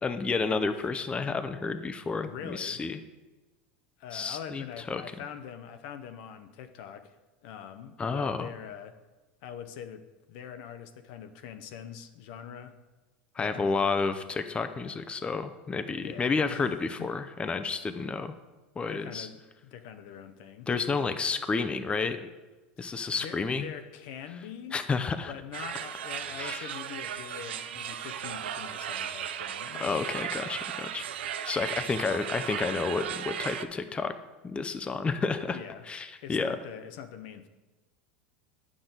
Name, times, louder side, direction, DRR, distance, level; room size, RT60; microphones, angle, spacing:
voice 1, 0.0-3.0 4.1-5.0 8.0-8.5 13.4-18.3 18.8-19.3 20.7-22.3 22.8-23.7 24.7-25.3 26.4-26.7 29.8-31.0 31.5-34.1 34.4-35.6 35.9-36.6, left 4 dB, 20° left, 9 dB, 0.5 m, -30 dB
voice 2, 2.1-2.8 4.0-7.2 7.4-9.0 9.4-12.8 13.4-14.0 16.0-16.7 17.0-17.1 18.9-20.7 22.8-24.8 25.3-30.0 35.5-35.8 36.2-37.5, left 8 dB, 60° left, 9 dB, 0.7 m, -43 dB
sound 1, 25.5-33.7, right 9 dB, 80° right, 0.5 m, -36 dB
8.7 x 6.1 x 4.0 m, 1.2 s
hypercardioid pair, 90°, 6 cm